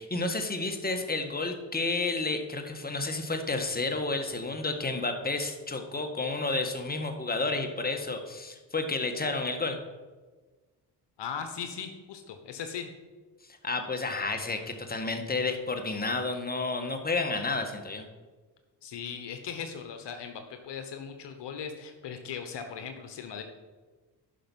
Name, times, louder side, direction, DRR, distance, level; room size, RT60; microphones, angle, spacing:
voice 1, 0.0-9.8 13.6-18.0, left 3 dB, 20° left, 5 dB, 1.6 m, -31 dB
voice 2, 11.2-12.9 18.8-23.4, left 7 dB, 65° left, 6 dB, 1.1 m, -38 dB
10.0 x 6.0 x 5.5 m, 1.3 s
supercardioid pair, 50°, 45 cm